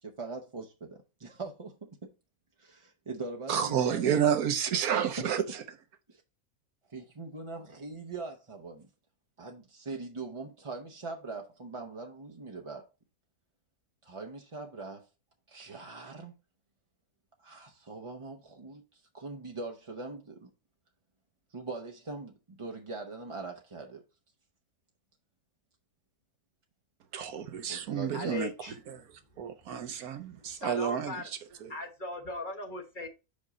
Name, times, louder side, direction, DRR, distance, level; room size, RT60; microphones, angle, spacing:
voice 1, 0.0-2.1 2.6-4.0 5.2-5.3 6.1-6.2 6.9-8.9 9.4-12.9 14.0-15.1 15.5-16.3 17.4-20.5 21.5-24.0 27.7-28.5, right 3 dB, 30° right, 0.6 m, -41 dB
voice 2, 3.5-5.6 27.1-28.5 28.9-29.1 29.4-31.7, right 8 dB, 75° right, 1.3 m, -30 dB
voice 3, 28.1-28.7 29.8-29.9 30.5-31.3 31.7-33.1, left 3 dB, 35° left, 1.1 m, -39 dB
5.3 x 5.3 x 4.8 m
omnidirectional pair, 1.6 m